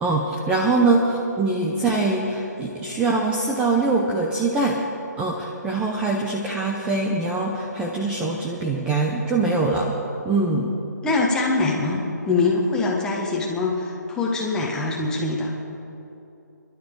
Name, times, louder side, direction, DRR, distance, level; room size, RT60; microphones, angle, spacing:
voice 1, 0.0-4.8 5.2-9.9 10.2-10.7, right 3 dB, 10° right, -1 dB, 0.8 m, -23 dB
voice 2, 11.0-15.5, left 3 dB, 5° left, -2 dB, 1.6 m, -23 dB
29.5 x 12.0 x 3.9 m, 3.0 s
hypercardioid pair, 155°, 10 cm